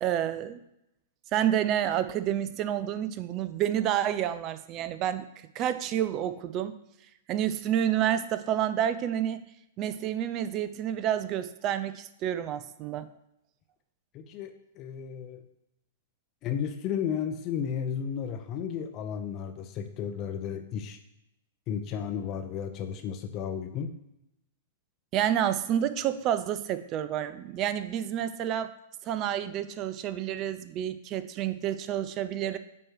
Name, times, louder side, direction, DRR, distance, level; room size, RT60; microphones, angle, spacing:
voice 1, 0.0-0.6 1.3-6.8 7.3-9.4 9.8-13.1 25.1-28.8 29.0-32.6, right 10 dB, 35° right, 12 dB, 0.4 m, -29 dB
voice 2, 14.1-15.4 16.4-21.0 21.7-23.9, left 8 dB, 35° left, 7 dB, 0.6 m, -33 dB
8.7 x 3.0 x 4.7 m, 0.84 s
figure-of-eight pair, 105°, 0 cm